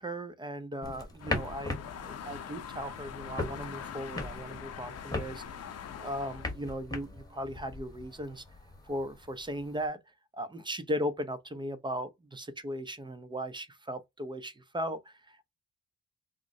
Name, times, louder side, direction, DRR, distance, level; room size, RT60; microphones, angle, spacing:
voice 1, 0.0-5.4 6.0-8.4 8.8-10.0 10.4-15.5, equal, 15° right, 0.5 m, -37 dB
sound 1, 0.8-9.9, left 2 dB, 15° left, 1.1 m, -40 dB
sound 2, 1.2-6.5, left 8 dB, 55° left, 0.6 m, -43 dB
3.6 x 2.0 x 2.6 m
cardioid pair, 90°, 30 cm